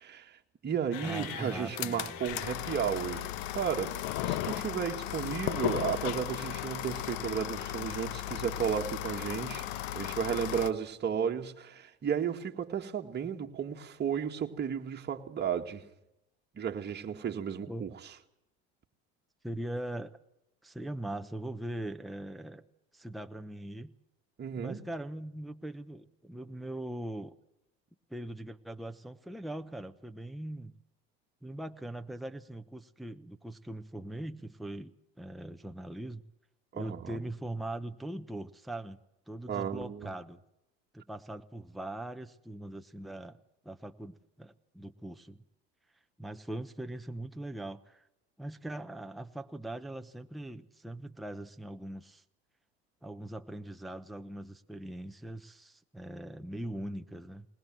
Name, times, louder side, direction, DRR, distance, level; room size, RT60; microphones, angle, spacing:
voice 1, 0.0-3.3 3.6-9.7 9.9-15.8 16.5-17.9 24.4-24.8 36.7-37.2 39.5-40.1, right 8 dB, 30° right, 2.1 m, -34 dB
sound 1, 0.9-10.7, left 13 dB, 80° left, 1.2 m, -36 dB
voice 2, 1.0-2.2 17.7-17.9 19.4-20.2 20.6-22.6 22.9-23.9 24.5-27.3 28.1-30.7 31.4-36.2 36.7-39.0 39.3-40.4 40.9-43.4 43.6-45.4 46.2-48.1 48.4-52.2 53.0-57.5, right 1 dB, ahead, 1.0 m, -41 dB
20.5 x 20.0 x 7.7 m
supercardioid pair, 100°, 32 cm